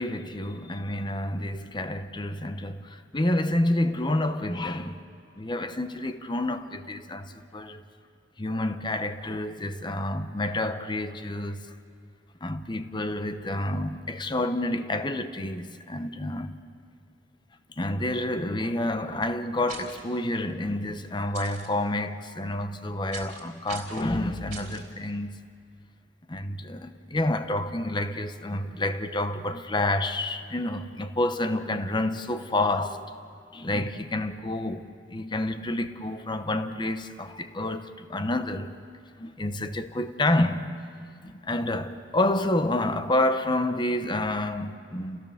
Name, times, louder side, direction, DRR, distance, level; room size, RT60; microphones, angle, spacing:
voice 1, 0.0-5.0 5.4-7.8 8.4-11.7 12.4-16.5 17.8-25.4 26.3-33.1 33.5-38.7 39.2-40.7 41.2-45.2, left 1 dB, 25° left, 0.8 m, -29 dB
sound 1, 19.7-20.0 21.3-21.7 23.1-23.4 23.7-24.1 24.5-24.8, right 5 dB, 45° right, 3.6 m, -41 dB
29.5 x 16.0 x 7.1 m
head